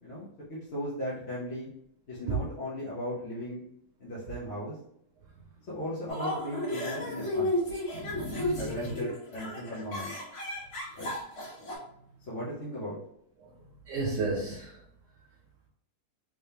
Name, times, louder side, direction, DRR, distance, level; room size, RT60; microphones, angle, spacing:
voice 1, 0.0-1.7 2.1-3.6 4.0-4.8 5.7-7.5 8.6-10.1 11.0-11.1 12.3-13.0, equal, 50° left, -9 dB, 1.1 m, -37 dB
sound 1, 6.1-11.7, left 1 dB, 70° left, 1.6 m, -33 dB
voice 2, 7.9-9.0 13.9-14.8, right 2 dB, 65° right, -2 dB, 0.9 m, -34 dB
3.5 x 3.4 x 2.7 m, 0.73 s
omnidirectional pair, 1.7 m